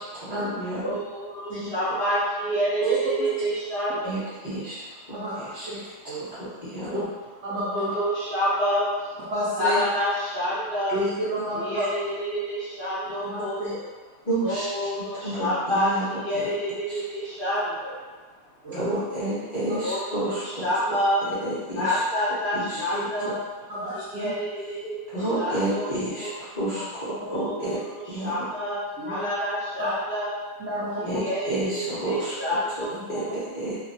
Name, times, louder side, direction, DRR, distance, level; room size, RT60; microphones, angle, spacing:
voice 1, 0.1-1.0 4.0-4.8 5.4-7.0 14.2-16.5 16.9-17.0 18.7-20.7 21.4-22.0 22.5-22.8 23.2-23.3 25.1-27.8 28.1-28.5 31.0-32.3 32.8-33.8, right 1 dB, 65° left, -13 dB, 0.4 m, -31 dB
voice 2, 0.8-4.2 7.7-9.2 9.6-10.9 11.5-13.8 14.4-15.9 16.2-18.0 19.8-21.2 21.7-23.4 24.1-24.9 25.4-25.9 26.2-26.3 27.3-27.8 28.2-30.3 31.0-33.2, equal, 40° left, -12 dB, 0.8 m, -28 dB
voice 3, 7.4-7.9 9.3-9.8 10.9-11.9 13.2-13.7 16.4-16.5 18.6-19.0 22.9-23.3 23.7-24.3 27.1-27.2 29.0-29.2 29.8-29.9 30.6-31.1 32.9-33.0, equal, 80° right, -9 dB, 0.6 m, -30 dB
2.8 x 2.4 x 2.5 m, 1.3 s
omnidirectional pair, 2.0 m